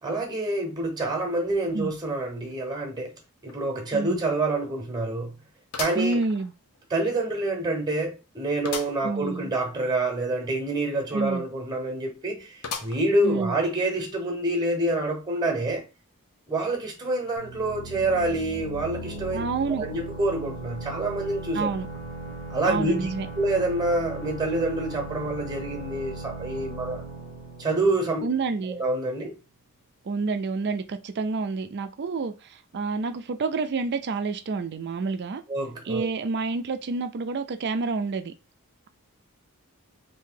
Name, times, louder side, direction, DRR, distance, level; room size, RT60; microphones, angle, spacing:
voice 1, 0.0-3.1 3.4-5.3 5.8-6.2 6.9-15.8 16.5-19.4 19.8-21.7 22.5-23.1 23.4-27.0 27.6-28.3 28.8-29.3 35.5-36.1, right 2 dB, 20° right, 0.9 m, -27 dB
sound 1, 3.5-3.6 4.0-4.1 5.7-6.8 7.3-7.4 8.6-9.1 9.5-9.6 9.8-9.9 12.6-13.3 13.8-13.9 14.9-15.0, left 5 dB, 85° left, 0.7 m, -36 dB
voice 2, 5.9-6.5 9.0-9.5 11.1-11.5 13.2-13.6 19.3-19.9 21.5-21.9 22.7-23.3 28.2-28.8 30.0-35.4 35.8-38.3, right 4 dB, 50° right, 0.4 m, -28 dB
sound 2, 17.4-28.9, right 2 dB, 45° left, 0.9 m, -38 dB
2.7 x 2.7 x 3.7 m
head